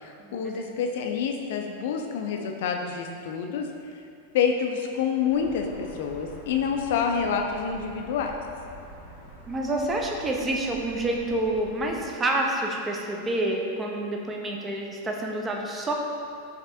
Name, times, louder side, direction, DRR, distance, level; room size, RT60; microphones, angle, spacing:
voice 1, 0.0-3.7 4.3-8.4, left 6 dB, 55° left, 3 dB, 0.4 m, -27 dB
sound 1, 5.3-12.1, right 1 dB, 65° right, 1.2 m, -46 dB
voice 2, 9.5-15.9, right 1 dB, 20° right, 0 dB, 0.5 m, -28 dB
5.0 x 3.3 x 2.6 m, 2.5 s
figure-of-eight pair, 90°, 0 cm